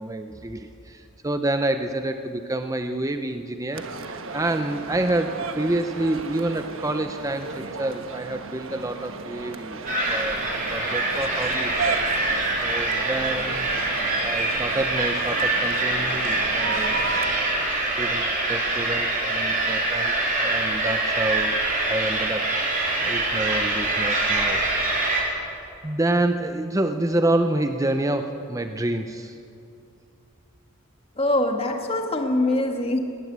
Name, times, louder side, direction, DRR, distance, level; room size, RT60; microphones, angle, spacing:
voice 1, 0.0-9.8 10.1-12.0 12.6-13.7 14.2-24.6 24.9-25.3 25.8-29.4, right 1 dB, 15° right, 7 dB, 0.6 m, -28 dB
sound 1, 3.7-17.3, right 4 dB, 60° right, 1.4 m, -35 dB
sound 2, 9.9-25.2, right 2 dB, 40° right, 4.3 m, -24 dB
voice 2, 31.2-33.0, left 1 dB, 25° left, 4 dB, 1.8 m, -23 dB
19.0 x 18.5 x 8.2 m, 2.6 s
head